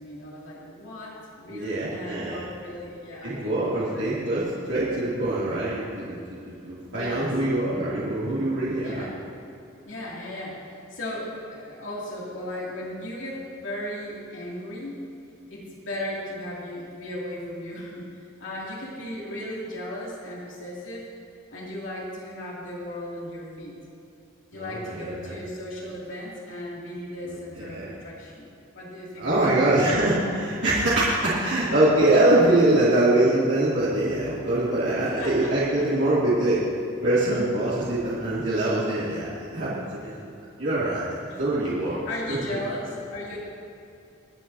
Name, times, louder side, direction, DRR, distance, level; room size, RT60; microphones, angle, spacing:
voice 1, 0.0-4.2 6.9-7.3 8.8-9.2 9.7-15.0 15.5-21.0 21.5-23.8 24.5-29.8 35.0-35.9 41.3-41.4 42.1-43.4, left 1 dB, 75° left, -5 dB, 2.7 m, -36 dB
voice 2, 1.5-2.4 3.2-6.2 6.6-9.1 24.5-25.3 27.3-27.9 29.2-36.6 37.0-40.3 40.6-42.0, right 1 dB, 75° right, -10 dB, 2.8 m, -24 dB
26.5 x 9.0 x 2.8 m, 2.6 s
head